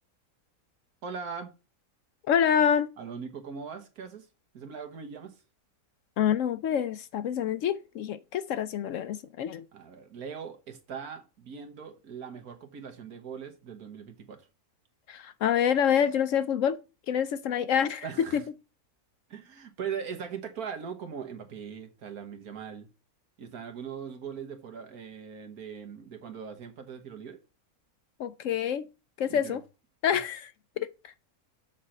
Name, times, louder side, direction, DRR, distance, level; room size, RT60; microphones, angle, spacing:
voice 1, 1.0-1.5 3.0-4.3 4.5-5.4 9.7-14.5 18.0-18.4 19.3-22.9 23.4-27.4 29.3-29.6 30.1-30.2, right 7 dB, 75° right, 1.8 m, -40 dB
voice 2, 2.3-2.9 6.2-9.6 15.1-16.8 17.1-18.0 18.3-18.4 28.2-28.9 29.2-29.6 30.0-30.4 30.8-31.1, left 8 dB, 70° left, 0.8 m, -27 dB
7.4 x 4.4 x 6.4 m
omnidirectional pair, 1.6 m